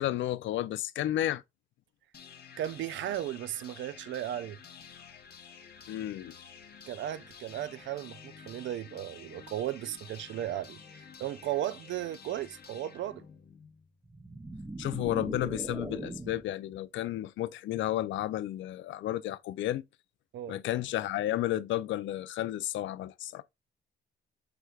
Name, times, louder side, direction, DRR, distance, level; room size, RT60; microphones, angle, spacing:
voice 1, 0.0-1.4 5.9-6.3 14.8-19.8 20.5-23.4, left 13 dB, 75° left, 0.4 m, -32 dB
sound 1, 2.1-14.1, left 7 dB, 50° left, 0.9 m, -51 dB
voice 2, 2.6-4.6 6.9-13.2 20.3-20.6, right 12 dB, 70° right, 0.5 m, -36 dB
sound 2, 14.0-16.6, right 2 dB, 10° right, 0.6 m, -40 dB
5.9 x 3.2 x 2.3 m
cardioid pair, 90°, 20 cm